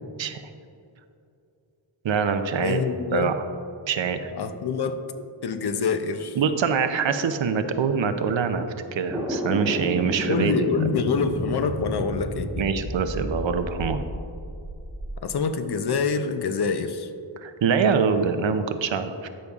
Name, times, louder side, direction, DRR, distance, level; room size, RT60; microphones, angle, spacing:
voice 1, 2.0-2.8 3.1-3.4 3.9-4.3 6.4-10.7 12.6-14.0 17.4-19.3, right 6 dB, 75° right, 8 dB, 0.6 m, -24 dB
voice 2, 2.6-3.3 4.3-5.0 5.4-6.4 10.3-12.6 15.2-17.1, left 5 dB, 60° left, 9 dB, 0.6 m, -26 dB
sound 1, 9.1-15.2, right 1 dB, 5° right, 1.1 m, -31 dB
13.0 x 5.3 x 2.4 m, 2.5 s
wide cardioid pair, 95°, 46 cm